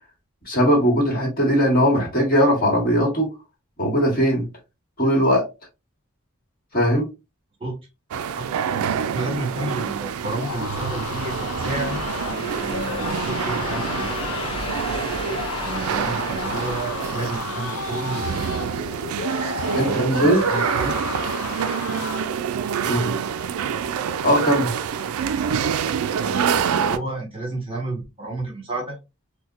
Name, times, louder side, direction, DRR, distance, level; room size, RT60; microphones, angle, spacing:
voice 1, 0.5-3.3 3.8-4.5 5.0-5.4 6.7-7.1 19.7-20.4 22.9-23.1 24.2-24.7, equal, 40° left, -2 dB, 1.3 m, -19 dB
sound 1, 8.1-27.0, right 7 dB, 75° right, 0.3 m, -26 dB
voice 2, 9.1-14.2 15.6-18.6 19.8-21.0 22.7-22.9 26.2-29.0, right 2 dB, 25° right, -1 dB, 1.2 m, -31 dB
sound 2, 9.9-18.4, left 2 dB, 25° left, 0.5 m, -35 dB
sound 3, 10.3-22.4, left 6 dB, 75° left, 0.5 m, -33 dB
4.1 x 2.2 x 2.4 m, 0.26 s
head